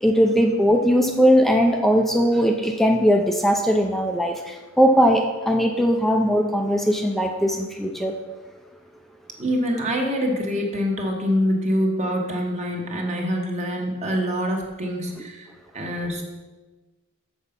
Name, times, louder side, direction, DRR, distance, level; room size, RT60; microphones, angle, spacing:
voice 1, 0.0-8.1, equal, ahead, 2 dB, 0.5 m, -19 dB
voice 2, 9.4-15.5 15.7-16.2, equal, 35° right, 1 dB, 1.3 m, -25 dB
6.9 x 6.4 x 5.1 m, 1.2 s
head